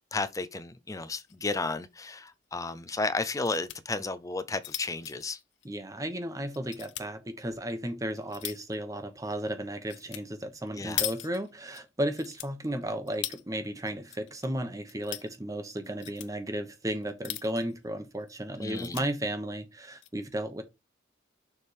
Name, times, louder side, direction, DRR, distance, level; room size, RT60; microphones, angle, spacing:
voice 1, 0.1-5.4 10.8-11.0 18.6-19.0, left 3 dB, 15° left, 0.5 m, -33 dB
sound 1, 0.9-1.4 1.7-1.8 2.1-2.2 3.2-3.8 4.3-6.1 6.5-7.1 7.7-8.8 9.9-10.2 10.5-11.8 12.1-13.4 13.9-14.5 14.8-15.3 15.8-16.3 17.0-17.7 18.2-18.3 18.6-19.1 19.8-20.1, left 14 dB, 65° left, 0.6 m, -39 dB
voice 2, 5.6-20.6, right 1 dB, 20° right, 1.1 m, -34 dB
6.8 x 3.6 x 4.7 m
head